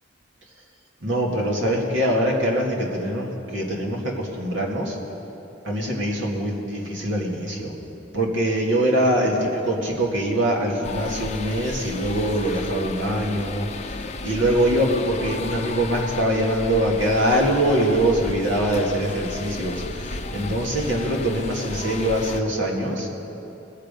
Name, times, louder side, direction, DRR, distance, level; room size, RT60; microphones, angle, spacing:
voice 1, 1.0-5.0 5.6-7.7 8.1-14.0 14.2-19.8 20.1-23.1, right 1 dB, 75° right, -2 dB, 2.2 m, -23 dB
sound 1, 10.8-22.4, left 3 dB, 35° left, 0.6 m, -33 dB
21.0 x 7.6 x 5.2 m, 3.0 s
head